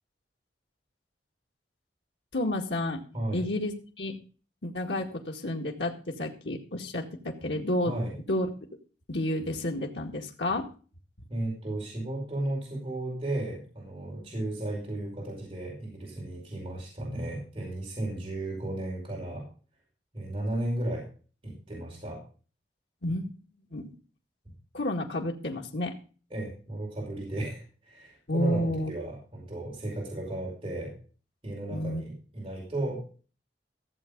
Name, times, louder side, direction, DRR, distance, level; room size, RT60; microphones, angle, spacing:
voice 1, 2.3-3.0 3.3-4.2 4.6-8.0 8.3-8.5 9.1-10.7 23.0-23.3 23.7-23.9 24.7-25.9 28.3-28.9 31.7-32.0, left 1 dB, 80° left, 1 dB, 2.0 m, -30 dB
voice 2, 11.3-19.5 20.1-21.1 21.4-22.2 26.3-30.9 31.4-33.0, right 1 dB, 30° right, -3 dB, 5.3 m, -34 dB
15.0 x 7.7 x 5.3 m, 0.38 s
head